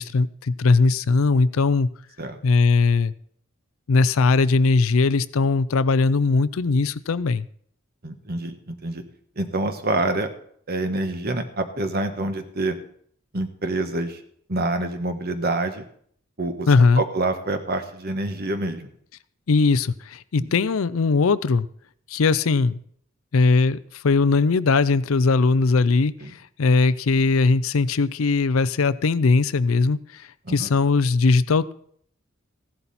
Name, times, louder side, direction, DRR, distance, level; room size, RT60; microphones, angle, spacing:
voice 1, 0.0-1.9 2.4-3.1 3.9-7.5 16.7-17.0 19.5-21.7 22.1-22.8 23.3-26.1 26.6-31.7, left 4 dB, 90° left, 16 dB, 0.5 m, -19 dB
voice 2, 8.0-9.0 9.4-10.3 10.7-12.8 13.3-14.2 14.5-15.9 16.4-16.7 17.0-18.9 20.4-20.5 26.2-26.3 30.5-30.7, right 2 dB, 50° right, 7 dB, 1.4 m, -26 dB
15.5 x 11.0 x 4.2 m, 0.63 s
head